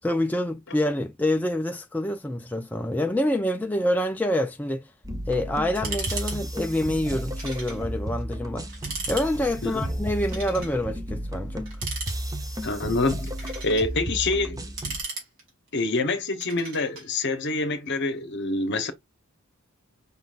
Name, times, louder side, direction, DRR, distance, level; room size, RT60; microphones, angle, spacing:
voice 1, 0.0-4.9 5.3-8.7 9.1-11.7, left 1 dB, 5° left, 0.4 m, -27 dB
sound 1, 5.0-15.0, right 1 dB, 15° right, 0.8 m, -33 dB
sound 2, 5.8-6.4 6.6-6.7 7.4-7.8 8.2-8.3 8.7-9.3 10.2-10.8 11.7-12.5 13.1-13.9 14.5-15.7 16.4-17.1, right 3 dB, 60° right, 2.7 m, -36 dB
voice 2, 12.6-14.6 15.7-18.9, left 2 dB, 50° left, 0.9 m, -26 dB
5.7 x 3.8 x 2.4 m
head